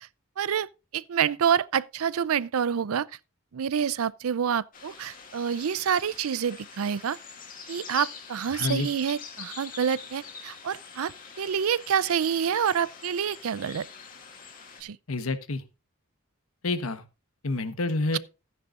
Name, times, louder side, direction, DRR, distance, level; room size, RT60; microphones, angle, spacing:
voice 1, 0.4-3.1 3.5-7.2 7.7-13.9 14.8-15.0 18.1-18.2, right 8 dB, 80° right, 0.5 m, -27 dB
sound 1, 4.7-14.8, left 6 dB, 40° left, 2.3 m, -44 dB
voice 2, 8.5-8.9 15.1-15.6 16.6-17.0 17.4-18.2, left 2 dB, 80° left, 1.2 m, -28 dB
14.0 x 9.7 x 2.5 m
head